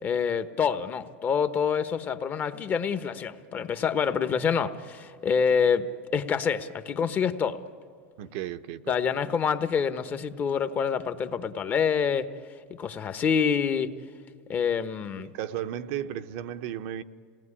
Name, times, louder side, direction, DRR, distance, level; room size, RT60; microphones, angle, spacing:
voice 1, 0.0-5.9 6.1-7.6 8.9-12.3 12.8-13.9 14.5-15.3, left 6 dB, 30° left, 10 dB, 1.0 m, -26 dB
voice 2, 8.2-8.9 15.2-17.0, right 11 dB, 60° right, 9 dB, 0.8 m, -34 dB
27.5 x 18.5 x 9.8 m, 2.1 s
supercardioid pair, 130°, 7 cm